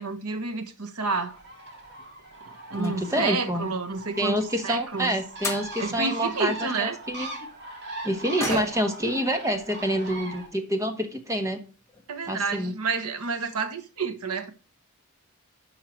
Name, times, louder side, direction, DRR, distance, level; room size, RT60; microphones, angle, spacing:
voice 1, 0.0-1.4 2.7-4.4 4.6-5.1 5.8-7.0 8.4-8.7 12.1-14.5, right 4 dB, 80° right, 1.2 m, -29 dB
Bird, 1.3-10.5, right 2 dB, 50° right, 2.6 m, -41 dB
sound 1, 1.7-2.1 2.7-3.5 5.1-5.2 5.4-5.7 8.4-9.0 9.4-9.5 9.9-10.1 10.9-11.0 11.3-11.4 11.8-12.1 12.4-12.5 12.8-12.9, left 3 dB, 15° left, 1.5 m, -36 dB
voice 2, 2.7-3.6 4.2-7.3 8.0-11.6 12.3-12.7, equal, 15° right, 1.4 m, -27 dB
10.5 x 5.8 x 4.5 m
head